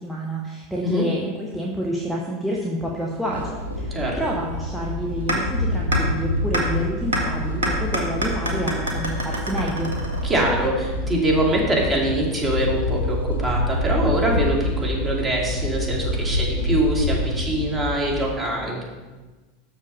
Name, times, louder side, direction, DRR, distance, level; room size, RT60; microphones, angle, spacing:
voice 1, 0.0-9.9, equal, ahead, -4 dB, 1.3 m, -28 dB
sound 1, 3.3-18.3, left 1 dB, 90° left, 1.3 m, -27 dB
voice 2, 3.9-4.4 10.2-18.8, right 1 dB, 20° right, -2 dB, 2.7 m, -23 dB
sound 2, 5.3-5.4 5.9-6.0 6.5-6.6 7.1-7.2 7.6-10.5, right 1 dB, 80° right, 1.7 m, -25 dB
6.6 x 5.8 x 6.6 m, 1.2 s
hypercardioid pair, 85°, 0 cm